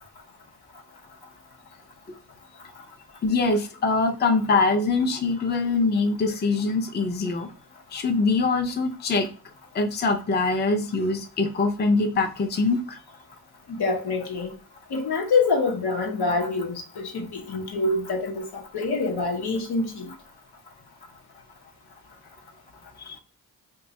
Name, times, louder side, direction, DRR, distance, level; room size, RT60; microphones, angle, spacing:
voice 1, 3.2-7.5 7.9-9.3 9.7-13.0 23.0-23.2, left 3 dB, 30° left, 0.4 m, -23 dB
voice 2, 13.7-14.5 14.9-20.1, left 3 dB, 85° left, 1.0 m, -26 dB
2.6 x 2.2 x 3.9 m
wide cardioid pair, 160°, 38 cm